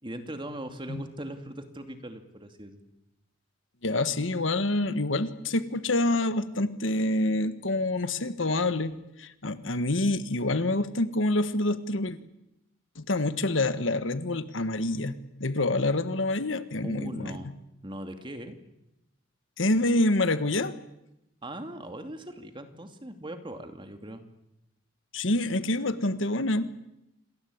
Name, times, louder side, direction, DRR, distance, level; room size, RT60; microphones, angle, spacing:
voice 1, 0.0-2.8 16.8-17.5 17.8-18.6 21.4-24.2, right 1 dB, 25° right, 7 dB, 2.6 m, -40 dB
voice 2, 3.8-12.2 13.0-17.3 19.6-20.8 25.1-26.8, left 2 dB, 70° left, 12 dB, 1.5 m, -27 dB
27.5 x 21.0 x 8.7 m, 0.89 s
head